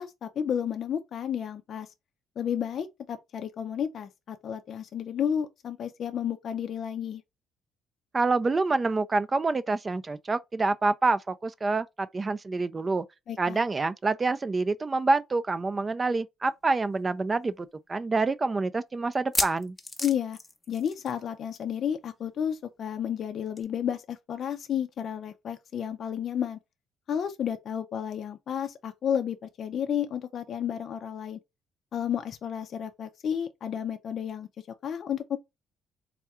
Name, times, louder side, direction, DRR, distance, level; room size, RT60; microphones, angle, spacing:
voice 1, 0.0-1.9 2.4-7.2 13.3-13.6 20.0-20.4 20.7-26.6 27.1-31.4 31.9-34.5 34.8-35.4, left 8 dB, 55° left, 0.4 m, -32 dB
voice 2, 8.1-13.1 13.4-19.8, right 3 dB, 25° right, 0.4 m, -27 dB
sound 1, 16.5-16.6 16.9-17.0 17.6-17.7 19.1-21.3 21.5-21.8 22.0-22.1 23.6-23.7, left 2 dB, 15° left, 0.7 m, -33 dB
3.5 x 2.3 x 4.2 m
cardioid pair, 100°, 0 cm